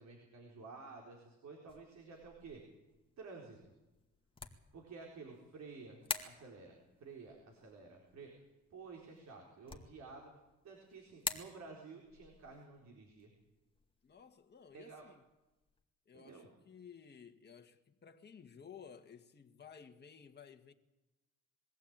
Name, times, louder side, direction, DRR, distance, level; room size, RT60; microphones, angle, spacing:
voice 1, 0.0-2.6 3.2-3.6 4.7-8.3 8.7-10.3 10.6-13.3 14.7-15.1 16.1-16.5, right 4 dB, 65° right, 4.3 m, -52 dB
sound 1, 1.7-15.8, left 3 dB, 15° left, 2.2 m, -50 dB
voice 2, 14.0-15.2 16.0-20.7, left 7 dB, 35° left, 1.7 m, -56 dB
22.0 x 15.0 x 8.9 m
cardioid pair, 90°, 30 cm